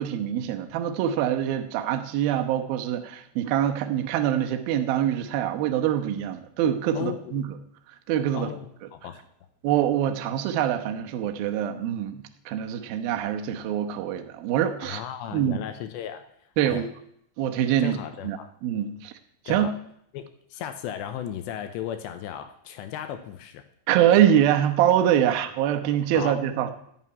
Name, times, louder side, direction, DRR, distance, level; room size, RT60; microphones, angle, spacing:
voice 1, 0.0-7.5 8.1-8.5 9.6-15.0 15.3-15.6 16.6-16.9 17.4-18.0 18.2-18.4 18.6-19.1 19.5-19.7 23.9-26.7, right 10 dB, 85° right, 6 dB, 2.1 m, -24 dB
voice 2, 6.9-7.4 8.3-9.2 14.8-16.3 16.6-16.9 17.8-18.5 19.5-19.7 20.1-23.6 25.3-25.4 26.1-26.4, left 10 dB, 80° left, 8 dB, 2.7 m, -35 dB
11.5 x 7.4 x 9.8 m, 0.71 s
omnidirectional pair, 5.7 m